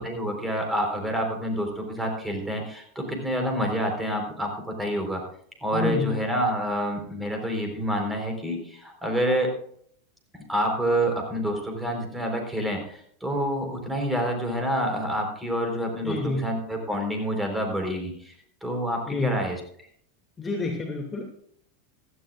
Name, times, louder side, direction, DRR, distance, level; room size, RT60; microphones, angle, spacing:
voice 1, 0.0-5.2 5.6-9.5 10.5-18.3 18.6-19.6, equal, 5° right, 2 dB, 4.3 m, -28 dB
voice 2, 5.7-6.1 16.0-16.5 19.1-19.4 20.4-21.2, left 3 dB, 20° left, 1 dB, 2.5 m, -28 dB
16.0 x 14.5 x 2.5 m, 0.64 s
figure-of-eight pair, 90°, 0 cm